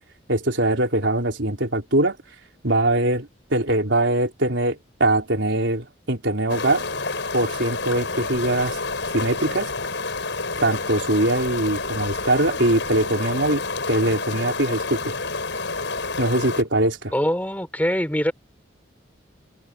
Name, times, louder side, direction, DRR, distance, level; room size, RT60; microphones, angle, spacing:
voice 1, 0.3-2.2 2.6-6.8 7.3-8.8 9.1-9.7 10.6-15.1 16.2-17.1, right 1 dB, 75° right, 4.0 m, -22 dB
sound 1, 6.5-16.6, left 3 dB, 70° left, 5.6 m, -29 dB
voice 2, 17.1-18.3, equal, 10° left, 4.4 m, -23 dB
open air
head